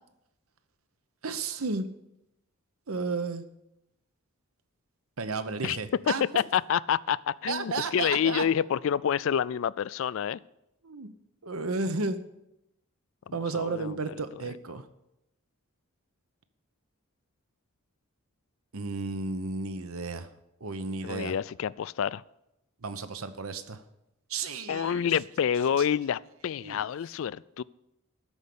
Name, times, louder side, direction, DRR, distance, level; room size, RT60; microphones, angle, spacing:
voice 1, 1.2-1.9 2.9-3.5 5.2-6.2 7.5-8.4 10.8-11.1 11.4-12.2 13.3-14.9 18.7-20.3 20.6-21.3 22.8-23.8 24.3-25.1 26.6-26.8, right 3 dB, 75° right, 11 dB, 0.9 m, -33 dB
voice 2, 6.1-10.4 13.3-14.0 14.5-14.6 21.0-22.2 24.7-27.6, left 8 dB, 60° left, 20 dB, 0.3 m, -28 dB
13.5 x 5.3 x 8.4 m, 0.87 s
head